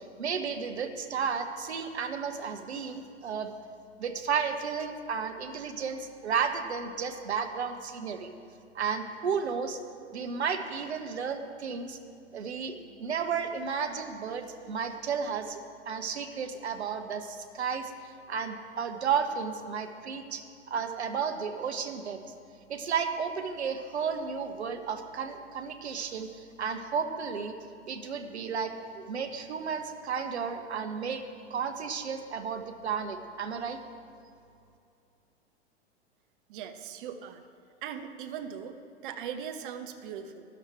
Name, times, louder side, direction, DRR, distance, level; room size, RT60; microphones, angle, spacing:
voice 1, 0.0-3.5 4.0-8.3 8.7-9.8 10.1-12.0 12.3-22.2 22.7-27.5 27.9-31.2 31.5-33.8, right 6 dB, 70° right, 7 dB, 1.1 m, -33 dB
voice 2, 36.5-37.4 37.8-40.5, right 8 dB, 50° right, 8 dB, 1.0 m, -39 dB
13.0 x 11.0 x 4.5 m, 2.5 s
figure-of-eight pair, 95°, 34 cm